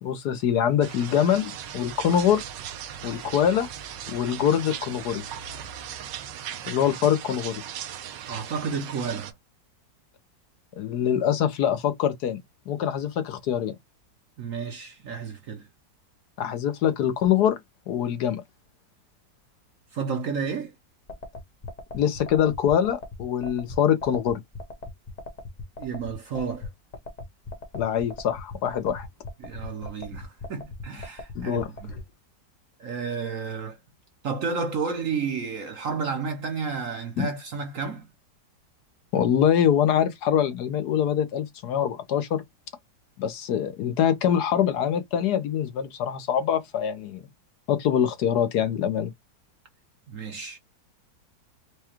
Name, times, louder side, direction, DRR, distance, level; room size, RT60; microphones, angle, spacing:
voice 1, 0.0-2.4 3.0-3.7 4.1-5.2 6.7-7.6 10.8-12.4 12.7-13.8 16.4-17.6 17.9-18.4 21.9-24.4 27.7-29.1 31.3-31.7 37.2-37.3 39.1-42.4 43.2-47.2 47.7-49.1, left 9 dB, 70° left, 1.1 m, -24 dB
sound 1, 0.8-9.3, right 9 dB, 75° right, 1.3 m, -38 dB
voice 2, 8.3-9.3 14.4-15.7 19.9-20.7 25.8-26.7 29.4-32.0 32.8-33.8 34.2-38.1 50.1-50.6, right 5 dB, 60° right, 1.0 m, -31 dB
sound 2, 21.1-32.0, left 2 dB, 40° left, 0.5 m, -38 dB
4.8 x 2.2 x 2.9 m
omnidirectional pair, 2.0 m